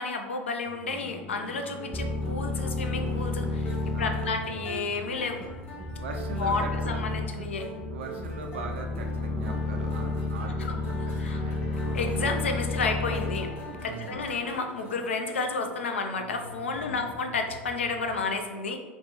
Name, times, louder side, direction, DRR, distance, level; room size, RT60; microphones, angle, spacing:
voice 1, 0.0-5.4 6.4-7.7 10.7-10.8 11.2-11.4 11.9-13.5 13.8-18.8, left 4 dB, 80° left, 5 dB, 0.3 m, -31 dB
sound 1, 0.7-18.2, left 2 dB, 50° left, 0.7 m, -46 dB
sound 2, 1.8-15.0, right 1 dB, 35° left, 1.1 m, -44 dB
sound 3, 1.9-14.4, left 2 dB, 10° right, 0.3 m, -32 dB
voice 2, 3.9-4.5 6.0-7.6 7.9-11.6 13.9-14.3 16.8-17.1, right 3 dB, 75° right, 3 dB, 0.4 m, -40 dB
2.9 x 2.1 x 3.2 m, 1.3 s
figure-of-eight pair, 80°, 6 cm